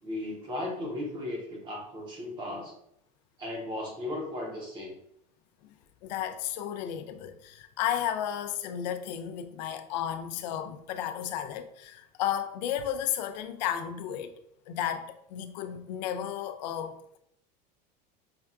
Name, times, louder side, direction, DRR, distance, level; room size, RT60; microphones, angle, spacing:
voice 1, 0.0-2.7 3.4-5.0, left 1 dB, 20° right, 0.7 m, -36 dB
voice 2, 6.0-14.3 14.7-17.2, left 10 dB, 80° left, 0.5 m, -33 dB
5.5 x 2.3 x 2.4 m
supercardioid pair, 180°, 21 cm